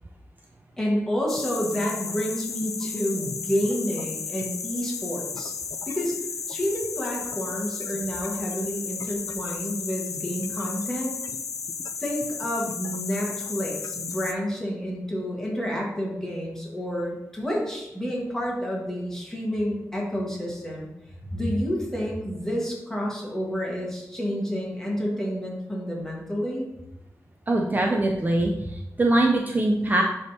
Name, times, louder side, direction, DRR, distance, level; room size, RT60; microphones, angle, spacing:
voice 1, 0.8-5.5 5.9-6.1 6.5-11.2 12.0-20.9 21.2-26.7, equal, 10° left, -3 dB, 1.5 m, -29 dB
sound 1, 1.3-14.3, left 5 dB, 65° left, 0.3 m, -34 dB
voice 2, 27.5-30.0, right 1 dB, 30° right, 1 dB, 0.5 m, -22 dB
10.5 x 3.5 x 2.8 m, 0.90 s
wide cardioid pair, 145°, 6 cm